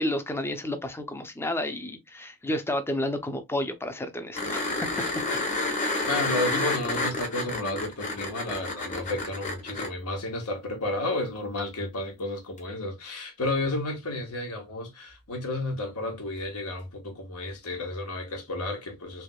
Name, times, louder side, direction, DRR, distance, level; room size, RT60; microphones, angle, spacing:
voice 1, 0.0-4.9, left 1 dB, 10° left, 0.5 m, -31 dB
sound 1, 4.3-9.9 12.6-12.7, left 2 dB, 35° left, 1.0 m, -29 dB
voice 2, 6.0-19.2, left 2 dB, 85° left, 1.3 m, -32 dB
3.4 x 3.0 x 2.3 m
head